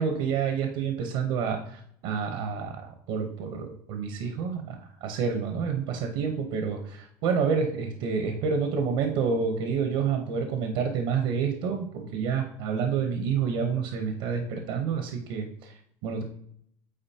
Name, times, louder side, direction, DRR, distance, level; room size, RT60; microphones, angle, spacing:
voice 1, 0.0-2.8 3.1-15.7 16.0-16.2, right 6 dB, 80° right, 4 dB, 1.0 m, -28 dB
8.8 x 4.1 x 2.8 m, 0.69 s
cardioid pair, 120°, 9 cm